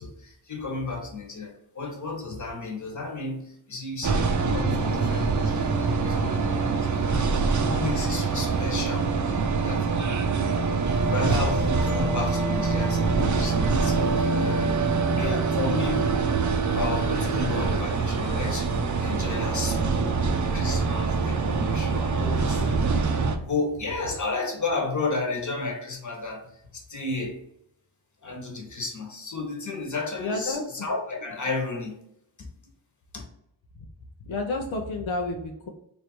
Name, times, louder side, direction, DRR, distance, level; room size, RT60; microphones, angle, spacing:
voice 1, 0.0-7.3 7.6-9.1 9.6-9.9 10.5-16.2 16.6-27.4 28.2-32.0 32.4-32.5 33.1-33.2, left 3 dB, 40° left, 1 dB, 1.2 m, -33 dB
sound 1, 4.0-23.4, right 4 dB, 40° right, 0.6 m, -24 dB
voice 2, 30.2-30.6 34.3-35.7, left 2 dB, 85° left, 0 dB, 0.7 m, -30 dB
3.2 x 2.7 x 4.4 m, 0.75 s
cardioid pair, 60°, 46 cm